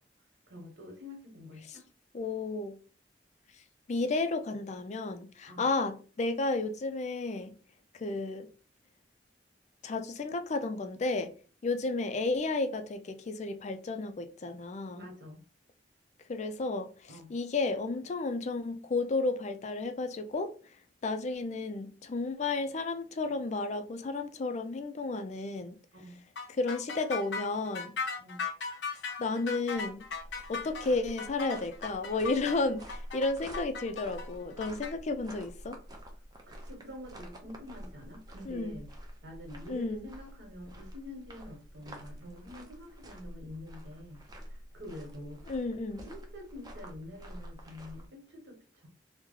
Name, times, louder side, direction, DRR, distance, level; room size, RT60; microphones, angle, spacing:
voice 1, 0.5-1.9 5.5-5.7 14.9-15.4 17.1-17.3 25.9-26.2 28.2-28.4 36.6-38.9 39.2-44.2 44.5-45.5 46.0-48.9, left 1 dB, 75° right, 1.3 m, -47 dB
voice 2, 2.1-2.8 3.9-7.5 7.9-8.5 9.8-11.3 11.6-15.1 16.3-20.5 21.0-25.7 26.5-27.9 29.2-30.0 30.5-35.8 38.4-38.8 39.5-40.1 45.5-46.1, left 3 dB, 40° left, 0.4 m, -32 dB
sound 1, 26.4-34.9, left 5 dB, 85° left, 0.6 m, -37 dB
sound 2, 29.7-48.1, equal, 20° right, 0.6 m, -48 dB
3.1 x 2.1 x 3.6 m
head